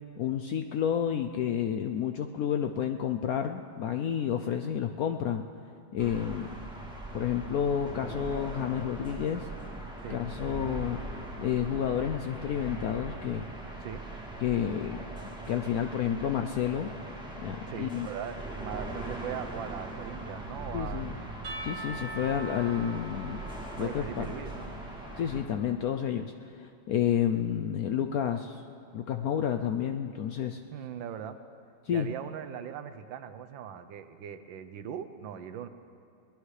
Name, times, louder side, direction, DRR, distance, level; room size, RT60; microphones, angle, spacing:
voice 1, 0.2-5.5 5.9-6.5 7.1-9.5 10.1-11.0 11.4-13.4 14.4-15.0 15.5-16.9 17.4-18.1 20.7-21.1 21.6-23.4 23.8-24.3 25.2-28.6 28.9-30.6 31.9-32.1, left 9 dB, 75° left, 6 dB, 0.8 m, -30 dB
sound 1, 6.0-25.4, right 2 dB, 5° right, 2.0 m, -40 dB
voice 2, 17.7-21.1 23.8-24.7 30.7-31.4 31.9-35.7, right 9 dB, 85° right, 10 dB, 1.5 m, -40 dB
Percussion / Church bell, 21.4-25.1, right 1 dB, 60° right, 2.0 m, -43 dB
22.0 x 19.5 x 3.3 m, 2.5 s
omnidirectional pair, 2.0 m